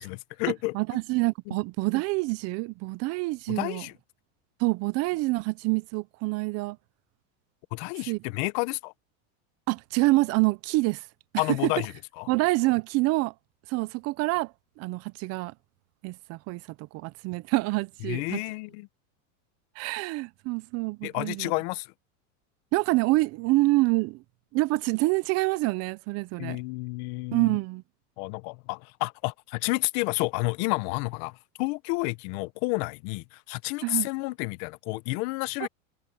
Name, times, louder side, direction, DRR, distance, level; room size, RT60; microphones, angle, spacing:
voice 1, 0.0-0.7 1.5-1.6 3.5-3.9 7.7-8.9 11.4-12.3 18.0-18.9 21.0-21.9 26.4-27.6 28.2-35.7, left 24 dB, 50° left, 0.9 m, -30 dB
voice 2, 0.7-3.8 4.6-6.8 8.1-8.2 9.7-11.0 11.6-11.7 12.3-13.3 13.7-14.5 14.8-15.5 16.0-16.6 16.9-18.4 19.8-21.5 22.7-24.2 24.5-26.6 27.3-27.8 33.8-34.1 35.6-35.7, right 22 dB, 40° right, 0.7 m, -26 dB
supercardioid pair, 145°, 39 cm